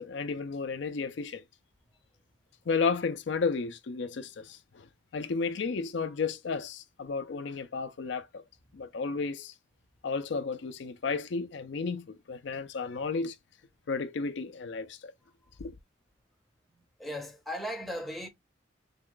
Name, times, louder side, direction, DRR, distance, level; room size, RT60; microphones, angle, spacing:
voice 1, 0.0-1.4 2.7-4.9 5.1-8.4 8.7-9.5 10.0-13.3 13.9-15.1 15.6-15.7, left 4 dB, 65° left, 0.4 m, -33 dB
voice 2, 16.7-18.3, equal, ahead, 0.6 m, -37 dB
3.5 x 2.2 x 3.6 m
head